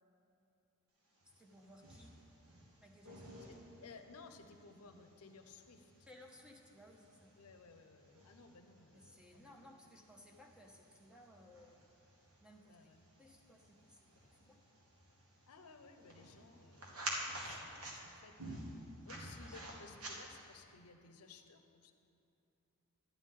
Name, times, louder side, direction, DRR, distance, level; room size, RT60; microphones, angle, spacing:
voice 1, 1.2-2.1 2.8-3.3 6.1-7.3 8.9-11.8 12.4-12.8 13.2-14.1 14.3-14.6 17.1-17.5 19.5-19.6, left 1 dB, 5° right, 1 dB, 0.7 m, -60 dB
sound 1, 1.2-20.6, right 1 dB, 70° right, 1.5 m, -51 dB
voice 2, 3.5-5.9 7.4-9.7 12.7-13.0 15.5-18.8 19.0-21.9, left 4 dB, 75° left, 7 dB, 0.6 m, -58 dB
11.5 x 10.0 x 3.7 m, 2.7 s
head